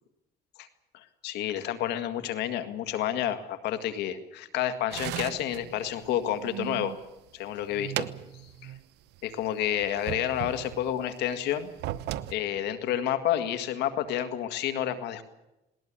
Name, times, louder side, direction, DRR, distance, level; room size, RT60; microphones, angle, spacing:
voice 1, 0.9-6.9 7.3-8.1 8.6-8.7 9.2-11.7 12.3-15.2, left 11 dB, 85° left, 10 dB, 1.9 m, -30 dB
sound 1, 4.9-7.0 7.4-8.8 9.1-9.2 9.8-11.0 11.6-12.3, right 14 dB, 80° right, 1.0 m, -37 dB
20.0 x 19.5 x 8.8 m, 0.94 s
cardioid pair, 110°, 17 cm